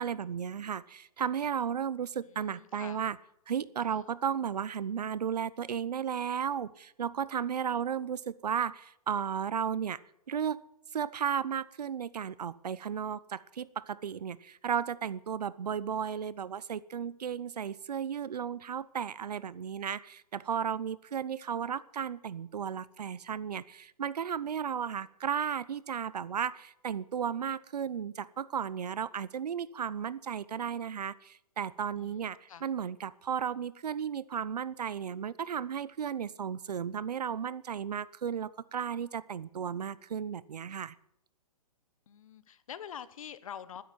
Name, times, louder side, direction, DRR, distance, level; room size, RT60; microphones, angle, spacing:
voice 1, 0.0-3.2 3.5-10.0 10.3-10.6 10.9-40.9, right 8 dB, 85° right, 20 dB, 0.8 m, -34 dB
voice 2, 2.1-3.0 3.8-4.1 32.0-32.6 42.1-43.8, left 9 dB, 60° left, 15 dB, 1.2 m, -46 dB
12.5 x 10.0 x 9.2 m, 0.77 s
hypercardioid pair, 160°, 20 cm